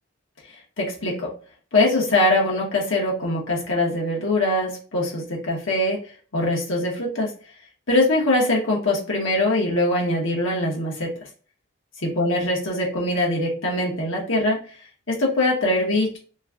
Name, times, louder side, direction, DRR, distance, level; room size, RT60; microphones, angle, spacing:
voice 1, 0.8-1.3 1.7-6.0 6.3-7.3 7.9-11.1 12.2-14.6 15.1-16.2, left 1 dB, 75° left, -3 dB, 1.2 m, -22 dB
3.1 x 2.3 x 3.6 m, 0.39 s
head